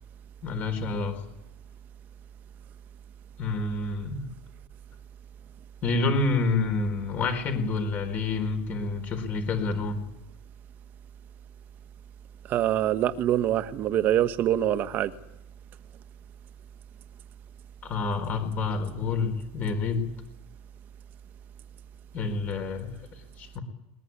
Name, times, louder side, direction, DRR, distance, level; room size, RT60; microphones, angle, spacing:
voice 1, 0.4-1.2 3.4-4.3 5.8-10.0 17.8-20.1 22.1-23.6, left 3 dB, 35° left, 4.4 m, -28 dB
voice 2, 12.5-15.1, right 12 dB, 40° right, 1.4 m, -24 dB
21.0 x 21.0 x 9.8 m
supercardioid pair, 150°, 5 cm